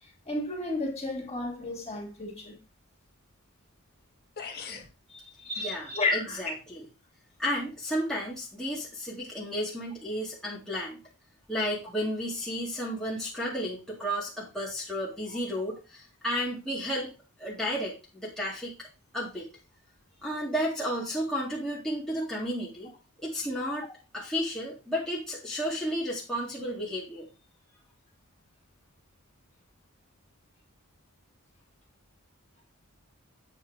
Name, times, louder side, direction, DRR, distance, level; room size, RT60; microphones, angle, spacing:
voice 1, 0.3-2.6 5.5-6.4, left 2 dB, 30° left, 2.6 m, -32 dB
sound 1, 4.0-4.1 4.4-4.9, left 5 dB, 45° left, 1.5 m, -40 dB
voice 2, 5.1-6.8 7.4-11.0 11.5-17.1 17.4-18.9 19.1-19.5 20.2-22.9 23.2-23.9 24.1-27.3, equal, 5° left, 2.1 m, -33 dB
8.3 x 4.5 x 5.0 m
head